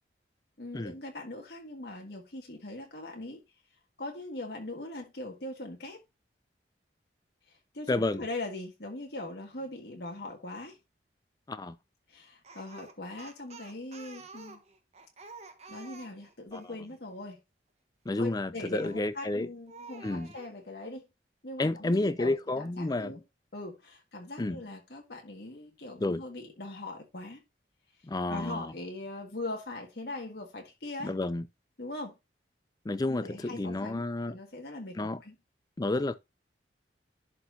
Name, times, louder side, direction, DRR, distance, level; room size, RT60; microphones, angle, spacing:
voice 1, 0.6-3.4 4.0-6.0 7.5-10.8 12.1-14.6 15.7-17.4 18.2-21.1 21.4-23.2 23.5-27.4 28.3-31.1 31.8-32.1 33.1-35.3, left 2 dB, 60° left, 1.7 m, -41 dB
voice 2, 7.9-8.2 11.5-11.8 16.5-16.6 18.1-19.5 20.0-20.3 21.6-23.1 24.4-24.6 26.0-26.2 28.0-28.7 31.0-31.4 32.9-34.3 35.0-35.2 35.8-36.1, left 2 dB, 20° left, 0.4 m, -30 dB
Speech, 12.4-16.8 18.8-19.2 19.7-20.5, right 4 dB, 35° right, 1.1 m, -49 dB
11.5 x 4.4 x 2.6 m
head